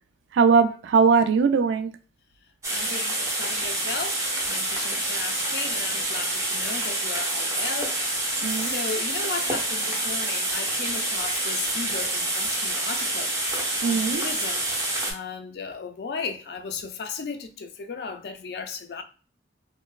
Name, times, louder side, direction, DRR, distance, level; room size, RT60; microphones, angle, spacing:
voice 1, 0.3-1.9 8.4-8.7 13.8-14.2, right 5 dB, 90° right, 0.3 m, -20 dB
sound 1, 2.6-15.1, right 1 dB, 15° right, 0.5 m, -27 dB
voice 2, 2.7-7.9 8.3-14.7 15.0-19.0, left 5 dB, 60° left, 0.3 m, -36 dB
2.9 x 2.1 x 2.3 m
head